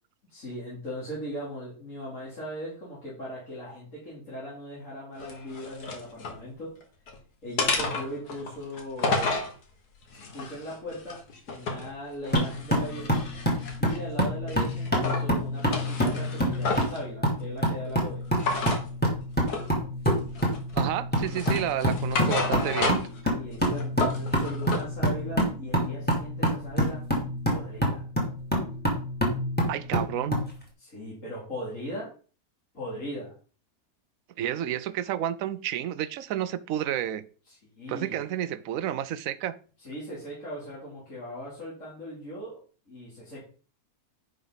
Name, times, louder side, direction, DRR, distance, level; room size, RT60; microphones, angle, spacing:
voice 1, 0.3-6.7 7.4-9.4 10.3-11.2 11.5-13.3 13.8-18.2 21.0-21.6 23.3-27.0 27.5-28.0 30.8-32.1 32.7-33.3 37.5-38.2 39.8-42.6 42.9-43.4, equal, 55° left, 3.4 m, -39 dB
sound 1, 5.2-6.4 6.8-7.2 7.6-9.5 10.1-11.9 12.2-14.1 14.5-15.3 15.6-17.0 18.4-18.8 19.5-19.7 20.0-20.8 21.2-23.2 23.5-24.9, left 3 dB, 85° left, 2.1 m, -31 dB
sound 2, 12.3-30.5, equal, 5° left, 2.3 m, -27 dB
voice 2, 20.7-23.0 29.7-30.4 34.4-37.2 37.9-39.6, right 11 dB, 70° right, 1.0 m, -30 dB
10.5 x 5.1 x 4.0 m
omnidirectional pair, 1.6 m